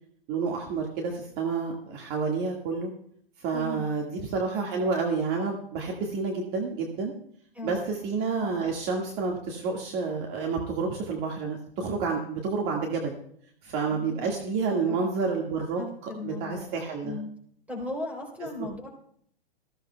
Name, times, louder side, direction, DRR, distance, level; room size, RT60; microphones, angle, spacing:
voice 1, 0.3-2.9 3.4-7.1 7.6-13.2 13.6-15.8 16.2-17.2, right 4 dB, 35° right, 1 dB, 1.8 m, -29 dB
voice 2, 3.5-3.9 7.5-7.8 13.9-14.4 14.9-15.0 15.8-16.7 17.0-17.3 17.7-18.9, left 2 dB, 5° right, 0 dB, 3.6 m, -37 dB
20.5 x 15.0 x 2.3 m, 0.66 s
figure-of-eight pair, 115°, 29 cm